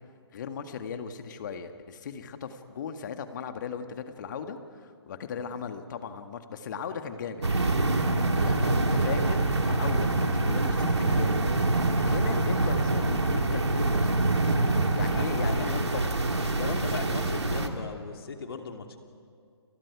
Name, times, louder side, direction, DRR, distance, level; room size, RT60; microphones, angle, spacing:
voice 1, 0.3-7.4 8.4-11.4 12.0-14.1 14.9-16.1 16.5-17.0, left 6 dB, 45° left, 7 dB, 1.9 m, -37 dB
sound 1, 7.4-17.7, right 2 dB, 80° right, 2.4 m, -25 dB
voice 2, 15.1-15.7 16.4-19.0, left 5 dB, 60° left, 4 dB, 2.9 m, -39 dB
30.0 x 28.0 x 4.9 m, 2.2 s
figure-of-eight pair, 135°, 14 cm